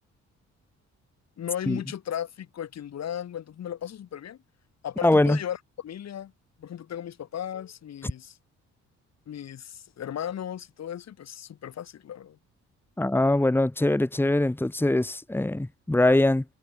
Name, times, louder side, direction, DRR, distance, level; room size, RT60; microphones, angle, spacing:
voice 1, 1.4-4.4 4.8-6.3 6.6-8.4 9.3-12.4, left 10 dB, 60° left, 2.3 m, -36 dB
voice 2, 5.0-5.4 13.0-16.4, left 2 dB, 5° left, 1.7 m, -22 dB
cardioid pair, 90°, 30 cm